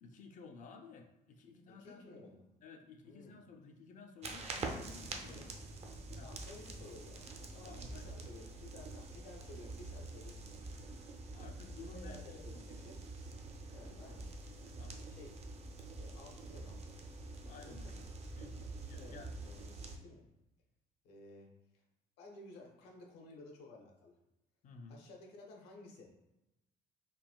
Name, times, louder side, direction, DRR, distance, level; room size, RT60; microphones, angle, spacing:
voice 1, 0.0-2.3 2.6-5.4 6.1-6.3 7.6-8.1 11.3-12.6 13.8-14.2 14.8-15.0 17.4-17.9 18.3-19.3 24.6-25.0, left 4 dB, 50° left, 5 dB, 0.4 m, -54 dB
voice 2, 1.7-2.4 3.0-3.4 4.7-4.9 5.2-5.5 6.2-7.2 7.5-10.5 11.9-13.0 13.7-14.3 15.1-15.4 15.9-17.1 17.7-17.8 19.0-20.2 21.0-21.5 21.7-21.8 22.2-24.2 24.9-26.1, left 2 dB, 90° left, 0 dB, 0.8 m, -55 dB
sound 1, 4.2-20.0, right 2 dB, 40° right, 0.5 m, -46 dB
3.9 x 2.2 x 2.3 m, 0.95 s
cardioid pair, 110°, 17 cm